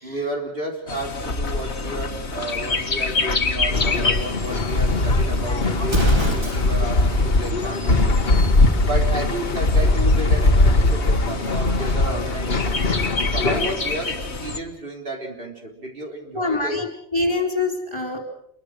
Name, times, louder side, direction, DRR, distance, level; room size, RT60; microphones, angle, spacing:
voice 1, 0.0-8.1 8.8-12.8 13.3-16.8, right 1 dB, 60° right, 1 dB, 4.0 m, -32 dB
Bird, 0.9-14.6, left 2 dB, 85° left, 1.9 m, -21 dB
Male speech man speaking / Chatter / Rattle, 3.7-13.8, left 4 dB, 65° left, 1.8 m, -28 dB
Explosion, 5.8-7.0, right 1 dB, 25° right, 2.7 m, -24 dB
voice 2, 16.3-18.2, left 3 dB, 25° left, 3 dB, 4.4 m, -25 dB
28.0 x 23.0 x 6.4 m, 0.70 s
omnidirectional pair, 1.1 m